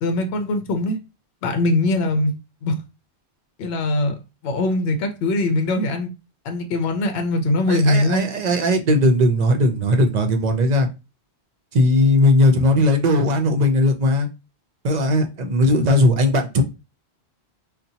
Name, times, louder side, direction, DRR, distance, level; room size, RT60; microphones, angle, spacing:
voice 1, 0.0-1.0 1.4-2.3 2.6-2.7 3.6-4.2 4.4-6.1 6.4-8.3, left 2 dB, 75° left, 0.8 m, -21 dB
voice 2, 7.7-10.9 11.7-14.3 14.8-16.6, left 1 dB, 50° right, 0.5 m, -18 dB
4.0 x 2.1 x 2.7 m
omnidirectional pair, 1.1 m